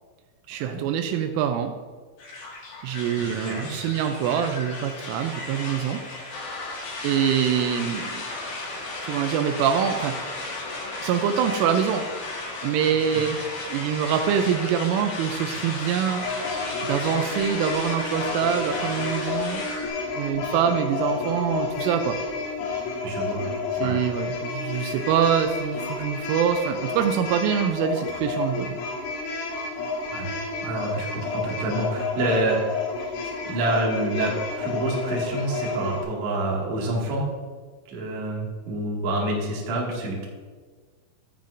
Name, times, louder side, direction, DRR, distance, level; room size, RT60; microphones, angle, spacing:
voice 1, 0.5-1.7 2.8-6.0 7.0-8.2 9.0-10.2 11.0-12.0 12.6-13.4 13.7-16.3 16.8-19.6 20.2-22.2 23.8-28.8, right 8 dB, 85° right, 6 dB, 3.0 m, -24 dB
sound 1, 2.2-19.9, left 2 dB, 55° left, 2.5 m, -34 dB
voice 2, 3.2-3.7 13.1-13.2 23.0-23.5 23.8-24.0 30.1-30.3 30.6-32.6 33.4-34.3 34.6-37.3 37.9-40.2, right 2 dB, 50° right, -3 dB, 2.4 m, -27 dB
sound 2, 16.2-36.0, left 4 dB, 75° left, 4.4 m, -31 dB
13.5 x 8.9 x 2.6 m, 1.5 s
omnidirectional pair, 5.7 m